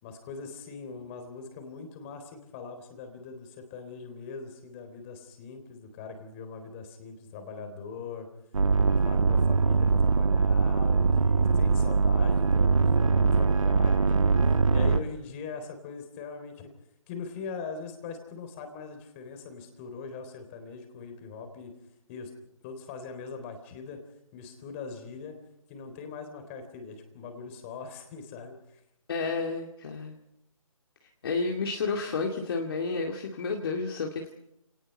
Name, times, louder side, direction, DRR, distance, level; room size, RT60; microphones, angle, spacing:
voice 1, 0.0-8.3 9.0-14.3 14.7-16.7 17.1-21.7 22.1-22.3 22.6-24.0 24.3-25.3 25.7-28.8, left 5 dB, 20° left, 6 dB, 3.7 m, -41 dB
sound 1, 8.5-15.0, right 4 dB, 65° right, 1.4 m, -22 dB
voice 2, 29.1-30.1 31.0-34.4, left 4 dB, 40° left, 1 dB, 2.2 m, -31 dB
29.0 x 19.0 x 5.5 m, 0.82 s
figure-of-eight pair, 150°, 18 cm